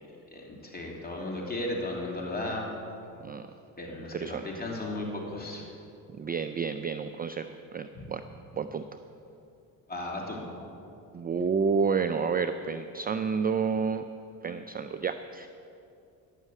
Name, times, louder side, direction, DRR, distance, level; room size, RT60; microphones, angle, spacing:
voice 1, 0.3-2.7 3.8-5.7 7.9-8.0 9.9-10.4, left 2 dB, 25° left, -2 dB, 3.1 m, -35 dB
voice 2, 4.1-4.4 6.1-7.5 7.7-8.2 8.5-8.9 11.1-14.1 14.4-15.5, right 5 dB, 25° right, 10 dB, 0.4 m, -30 dB
11.0 x 6.5 x 8.2 m, 2.6 s
supercardioid pair, 70°, 39 cm